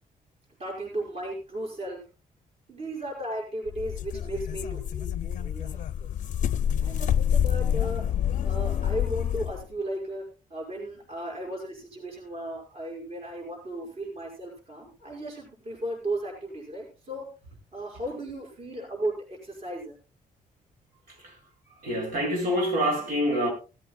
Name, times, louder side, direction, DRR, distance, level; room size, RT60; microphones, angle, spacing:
voice 1, 0.6-2.0 2.7-6.1 6.8-8.0 8.4-10.2 10.5-17.3 17.7-20.0, right 1 dB, 40° right, 5.7 m, -35 dB
sound 1, 3.7-9.6, left 9 dB, 55° left, 0.6 m, -27 dB
voice 2, 21.8-23.5, equal, 75° right, 7.3 m, -26 dB
17.5 x 15.5 x 2.3 m
cardioid pair, 160°, 15 cm